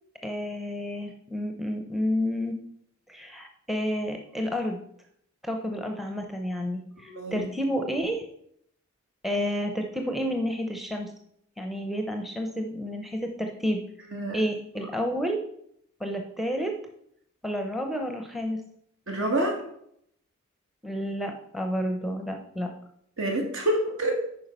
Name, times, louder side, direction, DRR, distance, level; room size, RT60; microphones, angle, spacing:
voice 1, 0.2-2.6 3.1-4.8 5.4-8.2 9.2-11.1 11.6-13.8 14.3-15.4 16.0-16.8 17.4-18.6 20.8-22.7, equal, ahead, 3 dB, 0.7 m, -30 dB
voice 2, 7.1-7.5 14.1-14.4 19.1-19.6 23.2-24.2, right 1 dB, 70° right, 1 dB, 2.3 m, -27 dB
9.3 x 4.7 x 5.5 m, 0.71 s
head